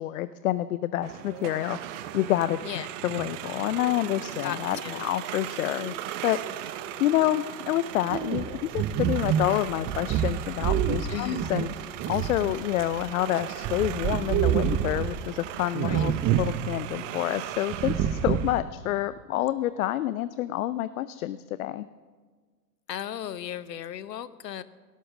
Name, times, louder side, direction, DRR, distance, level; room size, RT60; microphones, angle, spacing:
voice 1, 0.0-1.9 2.1-2.6 3.0-11.7 12.1-21.9, left 14 dB, 55° left, 15 dB, 0.7 m, -28 dB
sound 1, 1.0-18.6, right 12 dB, 50° right, 1.1 m, -38 dB
voice 2, 4.4-5.0 11.1-11.5 15.8-16.0 22.9-24.6, left 10 dB, 75° left, 16 dB, 1.0 m, -36 dB
sound 2, 8.1-13.1 13.4-15.3 15.7-16.6 16.9-17.0 17.7-18.6, right 10 dB, 25° right, 0.8 m, -27 dB
17.5 x 11.0 x 7.3 m, 1.5 s
figure-of-eight pair, 100°, 50 cm